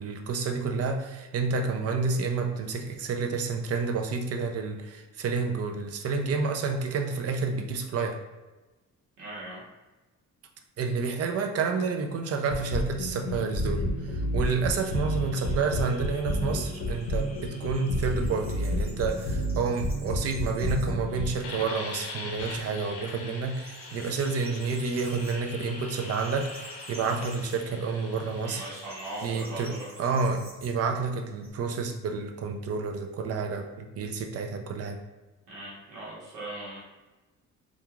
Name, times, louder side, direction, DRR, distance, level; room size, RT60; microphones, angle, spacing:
voice 1, 0.0-8.2 10.8-28.6 29.2-35.0, right 4 dB, 55° right, 4 dB, 0.5 m, -29 dB
voice 2, 9.2-9.6 28.4-29.9 35.5-36.8, right 1 dB, 85° right, -7 dB, 1.1 m, -39 dB
sound 1, 12.5-29.3, left 1 dB, 85° left, 0.5 m, -33 dB
sound 2, 14.6-19.4 23.2-27.9, left 2 dB, 25° left, 0.5 m, -49 dB
sound 3, 15.9-21.1 21.5-21.6 22.0-22.8 23.0-31.5, right 1 dB, 20° right, 0.9 m, -51 dB
2.8 x 2.4 x 2.3 m, 1.1 s
cardioid pair, 90°, 30 cm